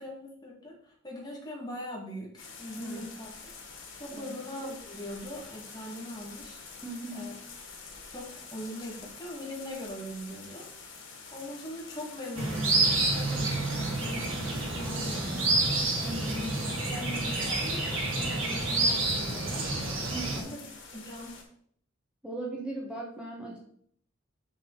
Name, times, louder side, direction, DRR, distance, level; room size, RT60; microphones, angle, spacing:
voice 1, 0.0-3.4 3.9-6.6 7.1-7.3 8.1-10.7 11.3-15.7 16.2-16.5 16.9-19.7 20.3-20.6 20.9-21.3, left 1 dB, 20° left, -2 dB, 2.1 m, -41 dB
sound 1, 2.4-21.4, left 4 dB, 85° left, 2.2 m, -47 dB
voice 2, 6.8-7.4 16.0-16.4 20.0-20.6 22.2-23.6, right 2 dB, 5° right, -4 dB, 1.4 m, -38 dB
sound 2, 12.3-20.4, right 2 dB, 80° right, 2.4 m, -29 dB
7.3 x 6.3 x 4.0 m, 0.63 s
head